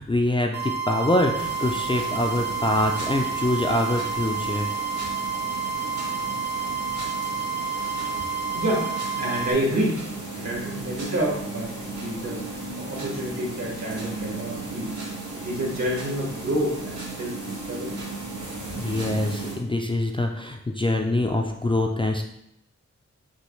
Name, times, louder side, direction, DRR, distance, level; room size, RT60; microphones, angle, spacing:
voice 1, 0.0-4.7 18.8-22.2, left 1 dB, 20° left, 2 dB, 0.3 m, -24 dB
sound 1, 0.5-9.5, right 6 dB, 35° right, 0.8 m, -30 dB
sound 2, 1.3-19.6, right 2 dB, 90° right, 1.3 m, -35 dB
voice 2, 8.5-8.9 9.2-10.0 10.3-15.0 15.3-18.0, equal, 70° right, -3 dB, 1.5 m, -29 dB
6.2 x 2.2 x 3.1 m, 0.80 s
wide cardioid pair, 90°, 29 cm